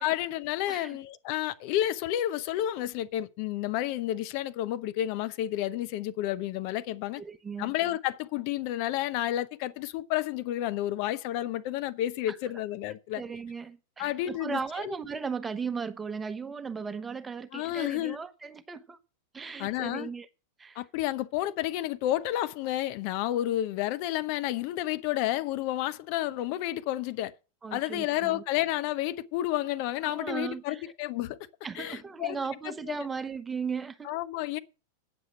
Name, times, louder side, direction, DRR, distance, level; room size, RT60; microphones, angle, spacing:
voice 1, 0.0-7.2 7.6-13.2 14.0-14.9 17.5-18.2 19.6-20.1 20.8-27.3 27.7-31.4 31.7-32.4 32.9-33.1 34.0-34.6, left 13 dB, 45° left, 0.7 m, -31 dB
voice 2, 0.7-1.0 7.2-7.7 12.3-12.4 13.1-19.0 19.3-20.3 20.6-20.8 27.6-28.4 30.0-30.8 31.6-34.1, right 5 dB, 15° right, 0.9 m, -36 dB
9.5 x 7.2 x 7.4 m
figure-of-eight pair, 90°, 0 cm